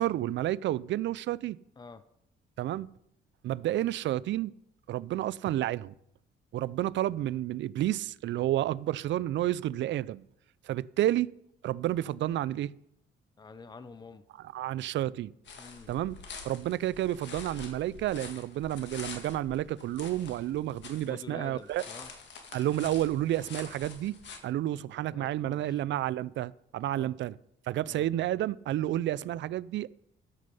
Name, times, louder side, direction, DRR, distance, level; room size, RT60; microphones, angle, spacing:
voice 1, 0.0-1.6 2.6-2.9 3.4-4.5 4.9-5.9 6.5-10.2 10.7-11.3 11.6-12.7 14.5-15.3 15.9-16.2 16.4-21.8 22.5-24.2 24.4-27.3 27.7-30.0, right 13 dB, 70° right, 0.4 m, -30 dB
voice 2, 13.4-14.3 15.6-15.9 20.9-22.1 25.1-25.8 27.0-27.1 27.9-28.1, left 4 dB, 20° left, 0.7 m, -47 dB
sound 1, 15.5-21.1 21.4-24.4, left 5 dB, 65° left, 2.0 m, -46 dB
13.0 x 6.4 x 5.5 m
cardioid pair, 90°, 20 cm